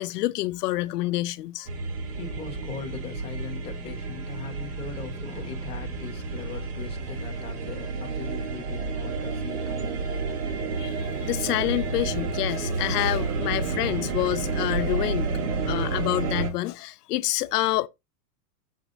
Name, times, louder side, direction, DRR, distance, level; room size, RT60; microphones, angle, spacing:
voice 1, 0.0-1.7 10.8-15.3 15.7-17.9, left 17 dB, 80° left, 0.6 m, -27 dB
sound 1, 1.7-16.5, right 4 dB, 70° right, 1.7 m, -30 dB
voice 2, 2.1-10.1, left 6 dB, 15° left, 0.8 m, -40 dB
6.5 x 3.0 x 5.1 m
supercardioid pair, 165°, 46 cm